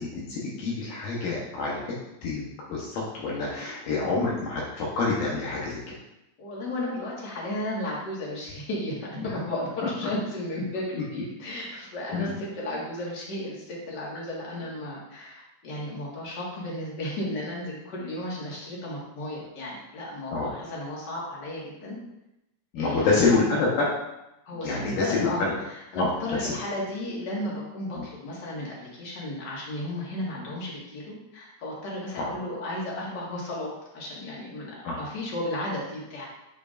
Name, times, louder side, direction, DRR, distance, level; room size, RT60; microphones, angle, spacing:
voice 1, 0.0-5.8 9.2-9.3 10.9-11.0 12.1-12.4 20.3-20.5 22.7-23.9 24.6-25.5 25.9-26.1 26.4-26.5 28.0-28.1 32.2-32.3 34.8-35.0, left 3 dB, 80° left, -5 dB, 2.8 m, -27 dB
voice 2, 6.4-8.9 9.2-22.0 22.7-23.3 24.4-25.4 25.9-36.3, left 1 dB, 40° left, -4 dB, 1.7 m, -34 dB
10.5 x 4.5 x 2.5 m, 0.89 s
omnidirectional pair, 4.0 m